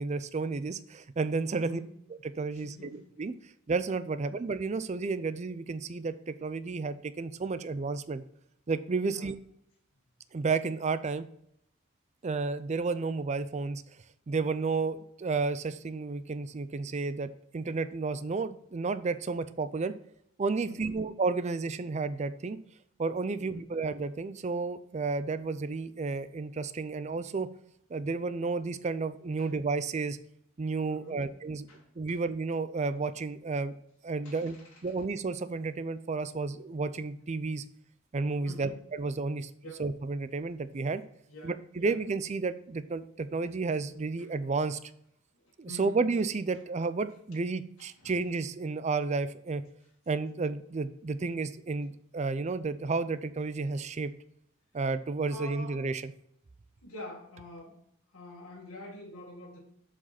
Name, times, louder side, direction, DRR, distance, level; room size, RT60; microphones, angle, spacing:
voice 1, 0.0-1.8 2.4-3.3 3.7-8.2 8.7-9.4 10.3-11.3 12.2-13.8 14.3-19.9 20.4-22.6 23.0-27.5 27.9-30.2 30.6-31.7 32.0-33.7 34.0-34.6 34.8-37.6 38.1-39.5 39.8-41.0 41.4-44.8 45.6-49.6 50.1-54.1 54.7-56.1, right 4 dB, 35° right, 12 dB, 0.4 m, -32 dB
voice 2, 1.5-1.8 2.5-3.1 9.1-9.3 20.6-21.0 23.3-23.7 29.4-29.5 30.9-31.3 31.7-32.2 34.2-34.8 38.4-38.8 39.6-39.8 40.8-40.9 41.3-42.0 45.6-46.1 47.8-48.2 55.2-55.8 56.8-57.8 58.1-59.6, left 1 dB, 90° left, -3 dB, 1.7 m, -47 dB
6.6 x 4.9 x 5.7 m, 0.72 s
head